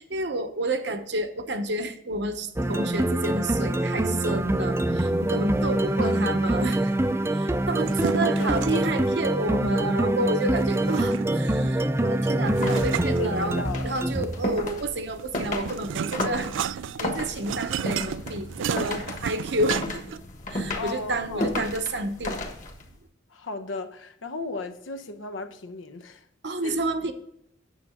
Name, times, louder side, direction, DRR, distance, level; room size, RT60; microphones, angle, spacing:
voice 1, 0.0-6.9 7.3-13.6 13.8-16.5 17.0-20.2 20.5-22.4 26.4-27.1, right 2 dB, 60° right, 0.9 m, -30 dB
sound 1, 2.6-14.5, right 1 dB, 15° right, 0.5 m, -25 dB
voice 2, 6.0-6.3 7.8-8.9 13.1-13.9 20.7-21.5 23.3-26.2 26.6-26.8, left 3 dB, 85° left, 0.9 m, -35 dB
sound 2, 7.7-9.1 10.5-11.5 12.5-13.9 15.1-20.2, right 8 dB, 80° right, 0.3 m, -33 dB
sound 3, 12.4-22.9, left 1 dB, 40° left, 1.4 m, -34 dB
9.3 x 7.2 x 3.6 m
head